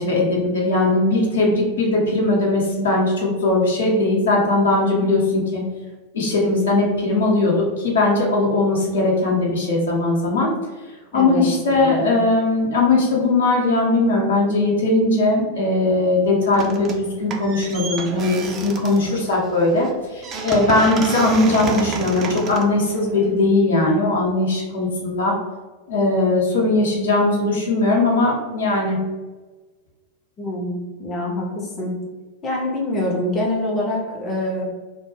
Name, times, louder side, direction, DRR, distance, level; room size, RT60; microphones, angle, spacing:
voice 1, 0.0-5.6 6.1-10.5 11.1-25.3 25.9-29.0, left 2 dB, 65° left, -3 dB, 0.7 m, -19 dB
voice 2, 11.1-12.2 30.4-32.0 32.4-34.6, left 1 dB, 25° left, -3 dB, 0.5 m, -25 dB
sound 1, 16.5-17.1 17.3-23.5, right 4 dB, 30° right, 0.3 m, -30 dB
2.1 x 2.1 x 3.0 m, 1.3 s
figure-of-eight pair, 90°, 0 cm